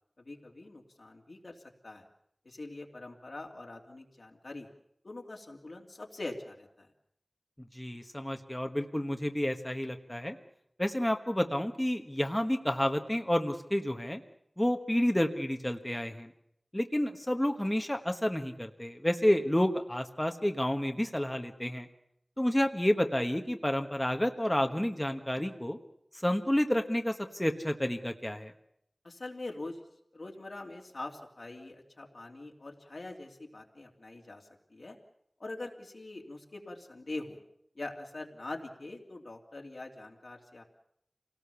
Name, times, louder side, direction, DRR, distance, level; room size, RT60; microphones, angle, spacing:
voice 1, 0.2-2.0 2.4-4.7 5.0-6.9 29.0-29.8 30.1-35.0 35.4-37.4 37.7-40.6, left 2 dB, 80° left, 1 dB, 2.9 m, -43 dB
voice 2, 7.7-10.4 10.8-14.2 14.6-16.3 16.7-21.9 22.4-25.8 26.2-28.5, left 1 dB, 15° left, 5 dB, 1.4 m, -30 dB
26.5 x 18.0 x 7.0 m, 0.74 s
wide cardioid pair, 55°, 0 cm